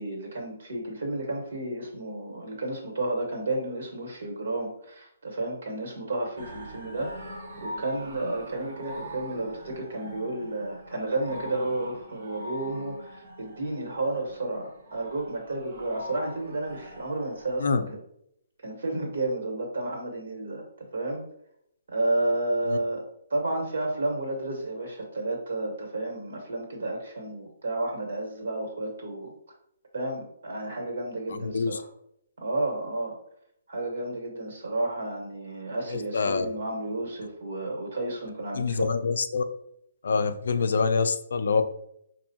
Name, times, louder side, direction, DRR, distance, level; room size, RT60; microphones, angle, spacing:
voice 1, 0.0-18.0 18.6-20.6 20.9-21.2 21.9-23.0 23.3-29.3 29.9-31.8 32.4-33.1 33.7-38.9, right 2 dB, 60° right, 1 dB, 1.5 m, -31 dB
sound 1, 6.4-17.6, equal, 40° right, 0.7 m, -43 dB
voice 2, 31.3-31.8 35.9-36.5 38.6-39.4 40.0-41.7, left 5 dB, 70° left, 9 dB, 0.4 m, -26 dB
5.3 x 2.6 x 2.8 m, 0.74 s
hypercardioid pair, 175°, 0 cm